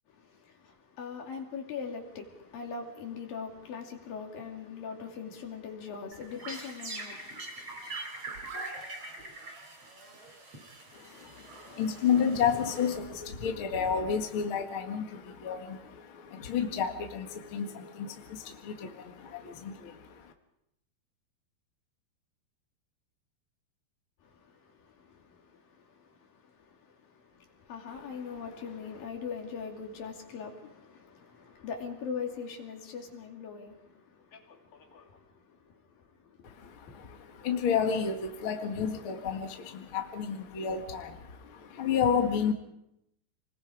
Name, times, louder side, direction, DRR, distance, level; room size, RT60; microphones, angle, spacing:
voice 1, 0.1-8.0 24.2-37.0, left 6 dB, 70° left, 4.3 m, -42 dB
sound 1, 6.1-13.4, right 2 dB, 45° right, 5.3 m, -43 dB
voice 2, 10.9-20.3 27.9-28.5 36.4-42.5, left 7 dB, 45° left, 2.1 m, -31 dB
29.0 x 21.0 x 5.0 m
omnidirectional pair, 4.3 m